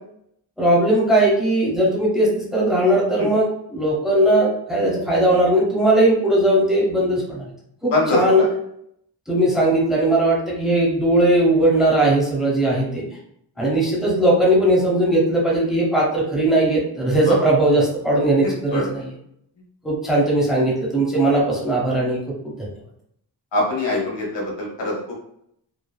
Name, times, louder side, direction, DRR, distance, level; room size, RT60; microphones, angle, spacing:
voice 1, 0.6-7.5 7.8-8.4 9.3-13.0 13.6-19.0 19.8-22.2 22.4-22.5, right 1 dB, ahead, -4 dB, 0.9 m, -18 dB
voice 2, 7.9-8.5 13.6-13.7 17.2-17.4 18.4-18.9 23.5-25.1, left 2 dB, 75° left, -3 dB, 1.0 m, -23 dB
3.2 x 2.2 x 2.2 m, 0.72 s
cardioid pair, 65°, 44 cm